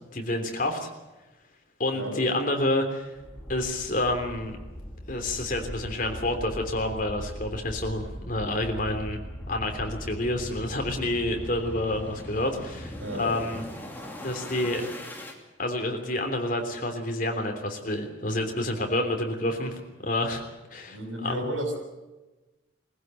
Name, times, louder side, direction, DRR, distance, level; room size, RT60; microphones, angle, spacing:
voice 1, 0.1-0.9 1.8-3.1 3.5-4.6 5.1-9.2 9.5-13.6 14.2-14.9 15.6-20.4 20.7-21.4, left 1 dB, 45° left, 3 dB, 3.3 m, -29 dB
sound 1, 3.1-15.4, equal, 10° left, 2.7 m, -40 dB
voice 2, 13.0-13.3 20.9-21.8, equal, 85° right, 4 dB, 6.9 m, -32 dB
22.0 x 15.5 x 9.1 m, 1.1 s
head